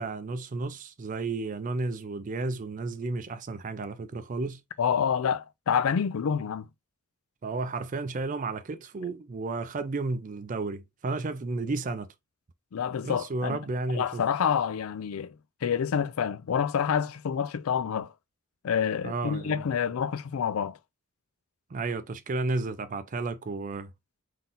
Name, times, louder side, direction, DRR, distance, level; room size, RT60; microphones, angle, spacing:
voice 1, 0.0-4.6 7.4-12.1 13.0-14.2 19.0-19.6 21.7-23.9, right 3 dB, 40° right, 0.4 m, -32 dB
voice 2, 4.8-6.7 12.7-13.6 13.9-15.4 15.6-18.1 18.6-20.8, left 7 dB, 80° left, 0.4 m, -28 dB
3.9 x 2.7 x 3.7 m
head